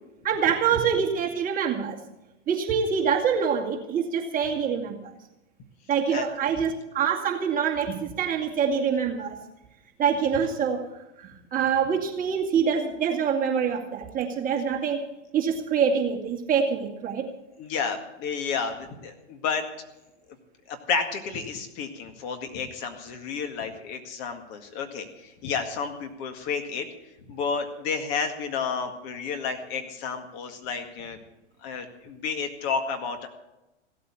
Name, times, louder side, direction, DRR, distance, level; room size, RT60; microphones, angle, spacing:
voice 1, 0.2-2.0 2.5-4.9 5.9-9.4 10.0-10.8 11.2-15.0 15.3-17.3, right 7 dB, 25° right, 0 dB, 2.3 m, -25 dB
voice 2, 17.6-19.6 20.7-26.9 27.3-31.2 31.6-33.3, left 5 dB, 40° left, 6 dB, 1.9 m, -31 dB
16.5 x 8.5 x 8.4 m, 0.95 s
hypercardioid pair, 125°, 36 cm